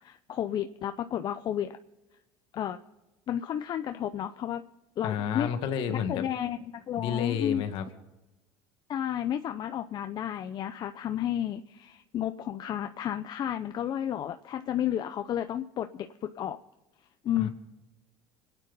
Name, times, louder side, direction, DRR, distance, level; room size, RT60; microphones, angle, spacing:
voice 1, 0.0-1.8 2.5-2.8 3.3-4.6 5.0-5.5 5.9-7.6 8.9-16.6 17.2-17.5, left 10 dB, 45° left, 8 dB, 0.7 m, -32 dB
voice 2, 5.0-6.2 7.0-7.8 17.4-17.5, left 8 dB, 65° left, 7 dB, 1.9 m, -30 dB
24.5 x 9.2 x 5.4 m, 1.0 s
supercardioid pair, 105°, 10 cm